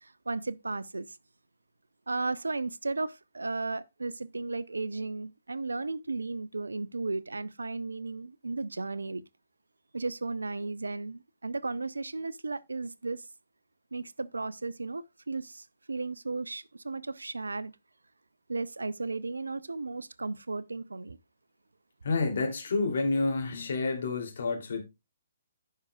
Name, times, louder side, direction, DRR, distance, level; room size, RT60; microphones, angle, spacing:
voice 1, 0.0-1.2 2.1-9.2 9.9-13.3 13.9-17.7 18.5-21.2, right 3 dB, 75° right, 0.5 m, -35 dB
voice 2, 22.0-24.8, left 3 dB, 55° left, 2.9 m, -29 dB
15.0 x 5.5 x 2.3 m
figure-of-eight pair, 130°, 0 cm